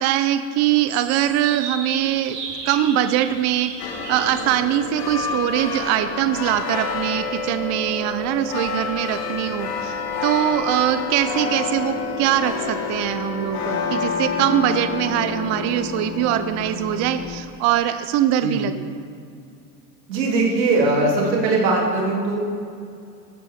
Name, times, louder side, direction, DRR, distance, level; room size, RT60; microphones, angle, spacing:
voice 1, 0.0-2.4 2.7-3.7 4.1-10.0 10.2-18.9, right 12 dB, 35° right, 11 dB, 0.4 m, -22 dB
sound 1, 0.9-5.9, right 4 dB, 70° right, 2.8 m, -36 dB
sound 2, 3.8-17.4, left 4 dB, 55° left, 1.5 m, -28 dB
voice 2, 20.1-22.4, right 2 dB, 85° right, -2 dB, 2.9 m, -20 dB
13.5 x 8.5 x 3.5 m, 2.4 s
hypercardioid pair, 105°, 50 cm